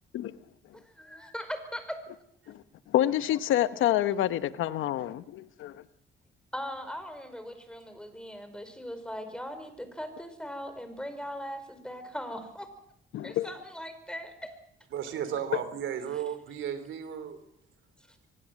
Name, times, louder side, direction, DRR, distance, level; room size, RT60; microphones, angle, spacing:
voice 1, 0.8-2.0 6.5-12.7 13.2-14.5 18.1-18.2, equal, 5° left, 9 dB, 4.9 m, -39 dB
voice 2, 2.5-5.8 13.1-13.5, left 12 dB, 85° left, 13 dB, 1.1 m, -28 dB
voice 3, 14.9-17.4, right 9 dB, 75° right, 11 dB, 3.4 m, -34 dB
24.0 x 19.0 x 7.6 m, 0.72 s
cardioid pair, 90°, 20 cm